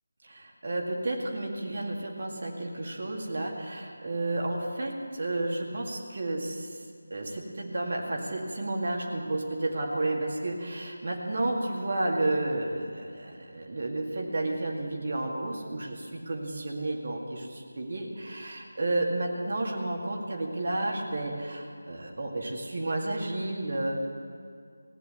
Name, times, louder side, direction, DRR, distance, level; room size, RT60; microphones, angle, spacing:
voice 1, 0.2-6.8 7.1-24.0, right 2 dB, 45° right, 0 dB, 2.0 m, -31 dB
16.5 x 9.2 x 7.9 m, 2.1 s
figure-of-eight pair, 160°, 0 cm